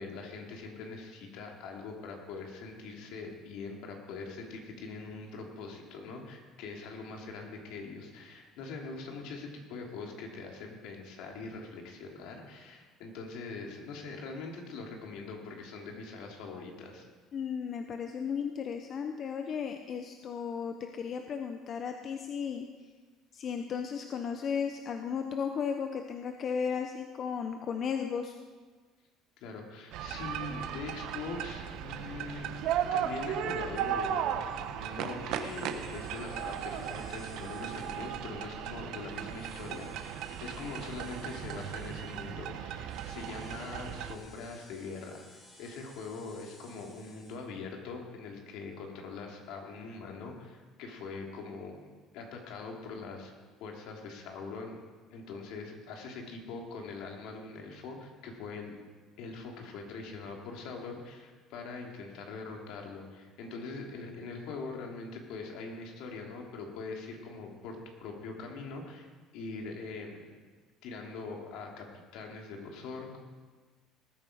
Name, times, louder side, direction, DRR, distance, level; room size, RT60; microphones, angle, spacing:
voice 1, 0.0-17.1 29.4-32.5 32.9-34.2 34.7-45.3 45.6-53.3 53.6-54.8 55.1-58.8 59.2-70.4 70.8-71.8 72.1-73.2, left 4 dB, 75° left, 1 dB, 2.8 m, -42 dB
voice 2, 17.3-22.7 23.3-28.4, left 6 dB, 45° left, 6 dB, 0.9 m, -35 dB
sound 1, 29.9-44.2, right 9 dB, 70° right, 1.0 m, -36 dB
sound 2, 34.5-34.7 35.3-38.5 39.1-42.3 42.9-47.4, left 2 dB, 25° left, 4.3 m, -57 dB
19.5 x 9.1 x 5.1 m, 1.4 s
cardioid pair, 110°, 0 cm